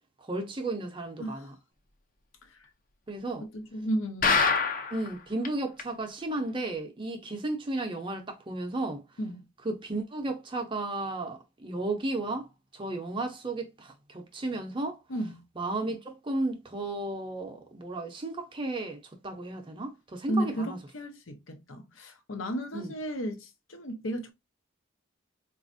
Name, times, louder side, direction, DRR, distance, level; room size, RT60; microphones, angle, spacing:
voice 1, 0.2-1.5 3.1-3.4 4.9-9.0 9.6-12.5 12.7-15.0 15.6-20.8 22.7-22.9, right 2 dB, 25° right, 0.5 m, -34 dB
voice 2, 1.2-1.5 2.5-2.6 3.4-4.4 9.2-9.4 15.1-15.4 20.3-24.3, right 1 dB, 80° left, 0.8 m, -34 dB
sound 1, 4.2-5.1 5.5-5.6 5.8-5.9 6.4-6.5, left 5 dB, 40° left, 0.5 m, -24 dB
4.1 x 2.4 x 2.5 m
head